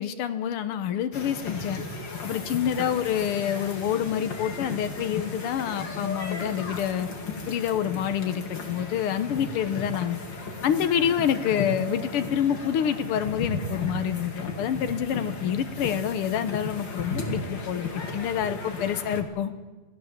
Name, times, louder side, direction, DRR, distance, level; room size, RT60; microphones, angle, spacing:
voice 1, 0.0-1.8 2.2-7.1 7.5-10.2 10.6-19.5, left 9 dB, 90° left, 10 dB, 1.9 m, -27 dB
sound 1, 1.1-19.2, left 3 dB, 55° left, 3.0 m, -35 dB
27.5 x 16.5 x 7.4 m, 1.3 s
omnidirectional pair, 2.4 m